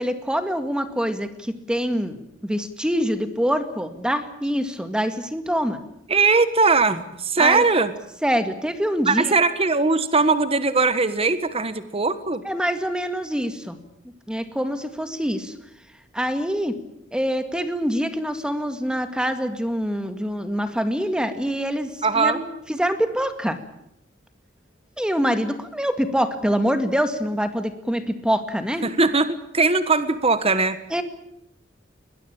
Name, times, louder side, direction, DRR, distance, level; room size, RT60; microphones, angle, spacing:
voice 1, 0.0-5.8 7.4-7.6 8.2-9.3 12.4-13.8 14.3-15.5 16.1-16.8 17.1-23.6 25.0-28.9 30.9-31.0, equal, 5° right, 9 dB, 2.1 m, -25 dB
voice 2, 6.1-7.9 9.1-12.4 22.0-22.4 28.8-30.8, right 4 dB, 30° right, 12 dB, 1.4 m, -20 dB
22.5 x 20.5 x 8.7 m, 0.77 s
head